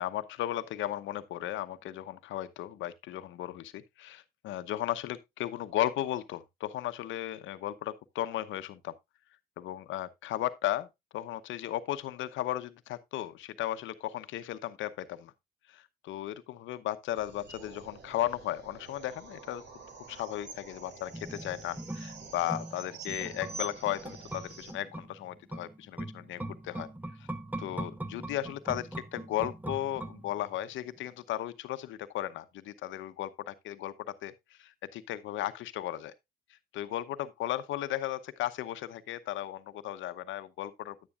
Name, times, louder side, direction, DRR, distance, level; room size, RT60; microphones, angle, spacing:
voice 1, 0.0-8.9 9.6-10.9 11.1-15.3 15.7-19.6 20.1-26.9 27.2-27.3 27.6-34.3 34.6-36.1 36.7-41.0, left 13 dB, 75° left, 0.9 m, -35 dB
sound 1, 17.1-24.7, right 3 dB, 60° right, 2.7 m, -47 dB
sound 2, 21.1-30.7 31.0-31.1, right 1 dB, 10° right, 1.1 m, -41 dB
9.8 x 9.6 x 2.4 m
supercardioid pair, 60°, 20 cm